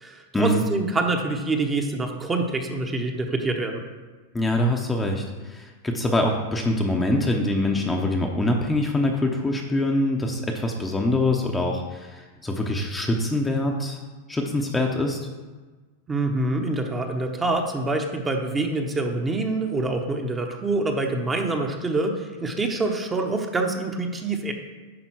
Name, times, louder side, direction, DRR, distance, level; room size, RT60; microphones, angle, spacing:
voice 1, 0.0-3.8 16.1-24.5, right 2 dB, 15° right, 4 dB, 1.0 m, -26 dB
voice 2, 4.3-14.0 14.3-15.2, left 1 dB, 10° left, 1 dB, 0.8 m, -24 dB
10.0 x 3.7 x 6.2 m, 1.3 s
hypercardioid pair, 120°, 0 cm